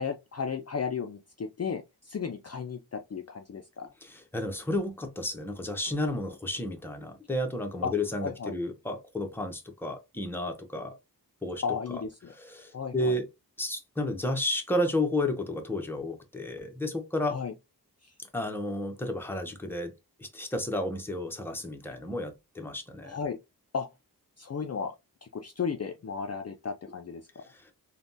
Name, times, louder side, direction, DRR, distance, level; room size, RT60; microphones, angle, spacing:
voice 1, 0.0-3.9 7.8-7.9 8.2-8.5 11.6-12.3 12.7-13.2 17.3-17.5 18.0-18.1 23.0-23.4 23.7-23.9 24.4-24.9 25.2-27.3, left 6 dB, 45° left, 0.4 m, -34 dB
voice 2, 4.0-10.9 11.4-11.6 11.9-12.0 12.4-13.3 13.6-17.4 18.3-19.9 20.2-23.2, left 1 dB, 5° left, 0.7 m, -32 dB
3.3 x 2.2 x 2.6 m
wide cardioid pair, 85°, 38 cm